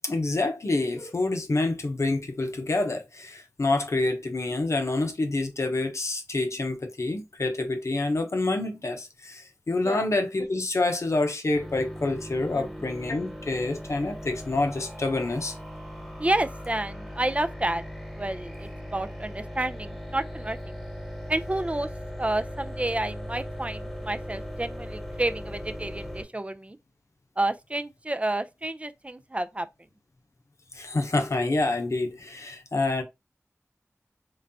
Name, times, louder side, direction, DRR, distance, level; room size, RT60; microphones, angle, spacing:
voice 1, 0.0-15.5 30.7-33.0, left 2 dB, 70° left, 0.8 m, -27 dB
sound 1, 11.5-26.2, equal, ahead, 1.4 m, -38 dB
voice 2, 16.2-17.8 18.2-20.8 21.3-21.9 22.2-26.8 27.4-29.7, right 1 dB, 25° right, 0.4 m, -30 dB
3.9 x 3.3 x 2.6 m
wide cardioid pair, 55°, 5 cm